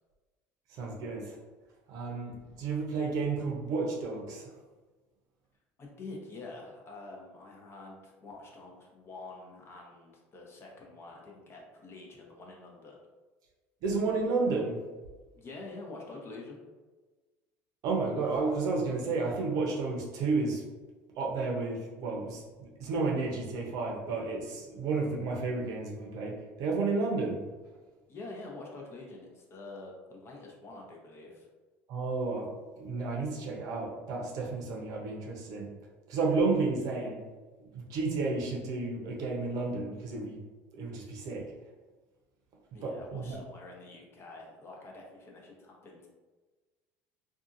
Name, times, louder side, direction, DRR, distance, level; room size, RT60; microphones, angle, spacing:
voice 1, 0.7-1.4 1.9-4.5 13.8-14.8 17.8-20.6 21.2-27.4 31.9-35.7 36.1-37.2 37.6-40.4 40.7-41.5 42.8-43.4, right 3 dB, 60° right, -1 dB, 0.7 m, -32 dB
voice 2, 5.8-13.0 15.4-16.6 28.1-31.5 42.7-46.1, left 2 dB, 35° left, -1 dB, 0.7 m, -46 dB
2.6 x 2.4 x 2.5 m, 1.3 s
supercardioid pair, 95°, 7 cm